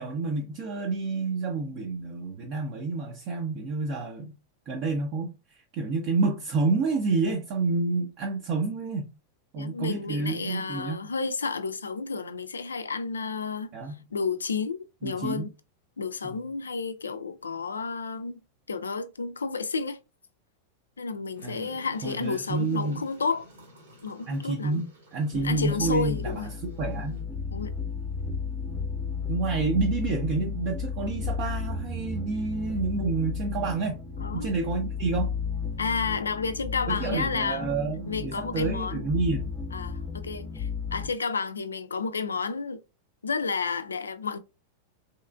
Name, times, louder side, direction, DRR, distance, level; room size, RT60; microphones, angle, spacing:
voice 1, 0.0-4.4 4.7-9.1 9.5-11.1 13.7-14.0 15.0-15.5 16.2-16.3 21.4-21.7 22.0-23.0 24.3-27.2 29.3-34.0 34.3-35.3 36.9-39.5, right 3 dB, 40° right, 0.6 m, -29 dB
voice 2, 9.6-13.7 14.1-15.5 16.0-18.4 18.7-20.0 21.0-23.5 24.0-24.8 25.3-26.5 27.5-27.7 34.2-34.5 35.8-37.7 38.1-39.0 39.7-42.8 43.2-44.4, left 4 dB, 75° left, 0.4 m, -31 dB
sound 1, 21.3-27.2, equal, 65° right, 1.1 m, -53 dB
sound 2, 25.3-41.1, left 5 dB, 20° left, 0.6 m, -33 dB
3.1 x 2.9 x 2.2 m
figure-of-eight pair, 90°, 0 cm